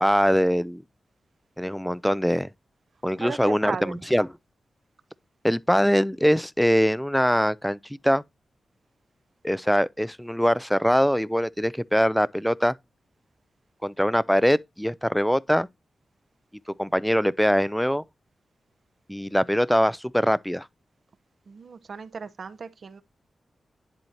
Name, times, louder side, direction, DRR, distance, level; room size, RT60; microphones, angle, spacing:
voice 1, 0.0-0.8 1.6-2.5 3.0-4.3 5.4-8.2 9.4-12.7 13.8-15.7 16.8-18.0 19.1-20.7, equal, ahead, 0.3 m, -22 dB
voice 2, 3.2-4.0 21.5-23.0, right 5 dB, 65° right, 0.7 m, -36 dB
10.5 x 4.3 x 2.7 m
cardioid pair, 75°, 0 cm